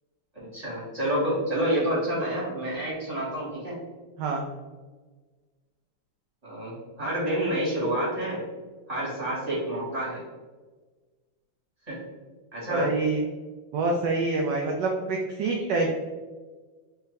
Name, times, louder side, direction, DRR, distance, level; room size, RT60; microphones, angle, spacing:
voice 1, 0.5-3.8 6.4-8.4 8.9-10.2 11.9-12.0 12.5-12.9, right 1 dB, 20° right, -7 dB, 1.4 m, -28 dB
voice 2, 12.7-13.2 13.7-15.9, right 3 dB, 75° right, 1 dB, 1.0 m, -26 dB
3.4 x 3.3 x 3.2 m, 1.3 s
omnidirectional pair, 2.3 m